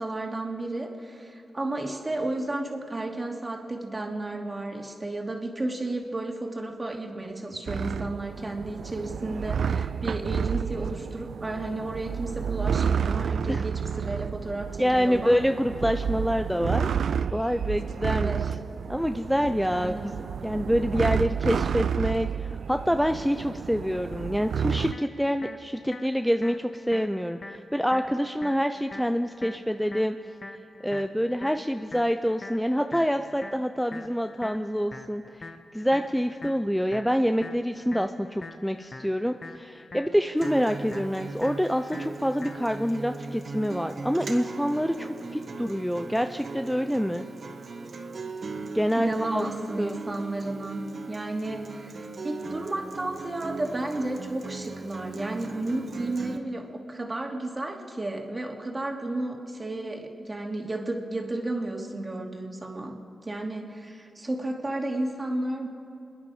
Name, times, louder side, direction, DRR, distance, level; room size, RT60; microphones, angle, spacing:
voice 1, 0.0-15.4 18.1-18.5 19.7-20.1 49.0-65.7, right 2 dB, 30° right, 1 dB, 2.5 m, -33 dB
sound 1, 7.7-24.9, right 7 dB, 80° right, 0.3 m, -30 dB
voice 2, 14.8-16.9 17.3-18.3 18.9-19.9 20.4-30.2 30.8-35.2 35.7-47.3 48.7-49.5 49.8-50.0, equal, ahead, 8 dB, 0.5 m, -26 dB
sound 2, 24.9-42.9, left 2 dB, 45° left, 1.1 m, -45 dB
Acoustic guitar, 40.4-56.4, right 3 dB, 60° right, 1.2 m, -39 dB
27.5 x 10.5 x 5.0 m, 2.6 s
cardioid pair, 60°, 0 cm